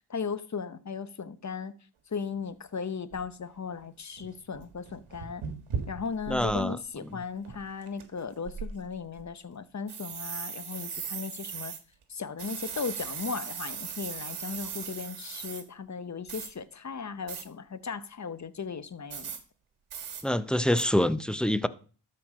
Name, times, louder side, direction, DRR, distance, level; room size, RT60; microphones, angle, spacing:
voice 1, 0.1-1.7 2.1-5.4 5.9-11.7 12.1-19.3, left 5 dB, 35° left, 0.9 m, -37 dB
sound 1, 2.4-2.5 3.1-3.3 3.8-3.9 4.2-6.6 7.0-7.1 7.5-8.0 8.5-9.2 9.9-11.8 12.4-15.6 16.3-16.5 17.3-17.4 19.1-19.4 19.9-20.2 20.8-20.9, right 7 dB, 80° right, 1.5 m, -38 dB
voice 2, 6.3-6.8 20.2-21.7, left 1 dB, ahead, 0.6 m, -25 dB
13.0 x 4.6 x 5.0 m
cardioid pair, 50°, 49 cm